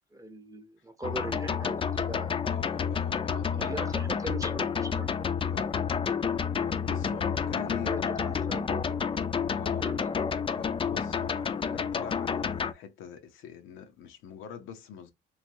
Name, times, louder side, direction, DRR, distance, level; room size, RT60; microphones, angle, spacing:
voice 1, 0.1-2.4 3.6-5.1 7.7-9.0 9.8-10.2, right 2 dB, 15° right, 0.6 m, -40 dB
sound 1, 1.0-12.7, left 6 dB, 25° left, 0.3 m, -30 dB
voice 2, 2.4-3.8 5.5-5.8 6.5-8.3 9.5-9.9 10.5-15.1, left 8 dB, 90° left, 0.6 m, -44 dB
3.1 x 2.6 x 2.6 m
cardioid pair, 90°, 20 cm